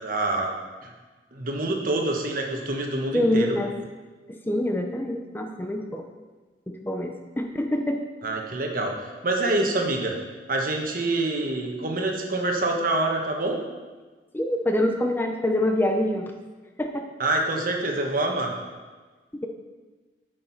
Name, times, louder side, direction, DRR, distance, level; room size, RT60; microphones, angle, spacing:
voice 1, 0.0-0.5 0.8-0.9 1.3-3.5 8.2-10.1 10.5-13.6 17.2-18.5, right 2 dB, 50° right, 1 dB, 1.3 m, -26 dB
voice 2, 3.1-3.7 4.3-6.1 6.7-8.0 14.3-16.3 16.8-17.1 19.3-19.5, left 1 dB, 10° left, 4 dB, 0.6 m, -25 dB
9.7 x 6.4 x 4.5 m, 1.3 s
head